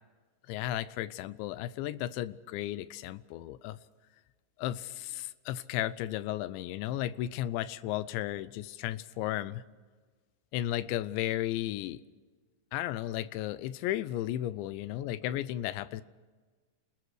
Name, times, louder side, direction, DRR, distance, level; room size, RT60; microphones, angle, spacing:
voice 1, 0.5-3.8 4.6-9.6 10.5-12.0 12.7-16.0, left 13 dB, 85° left, 16 dB, 3.0 m, -34 dB
30.0 x 20.0 x 4.8 m, 1.4 s
omnidirectional pair, 5.2 m